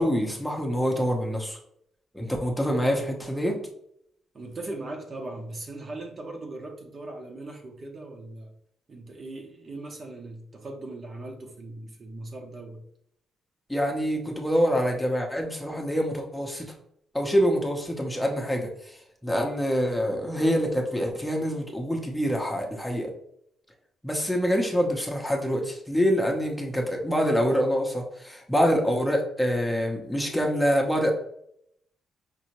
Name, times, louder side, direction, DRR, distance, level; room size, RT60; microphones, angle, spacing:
voice 1, 0.0-1.6 2.1-3.6 13.7-16.7 17.1-23.1 24.0-31.1, equal, 5° left, 0 dB, 0.8 m, -26 dB
voice 2, 4.3-8.5 8.9-12.8, right 2 dB, 40° right, 2 dB, 0.8 m, -39 dB
5.2 x 2.7 x 3.0 m, 0.70 s
cardioid pair, 105°, 0 cm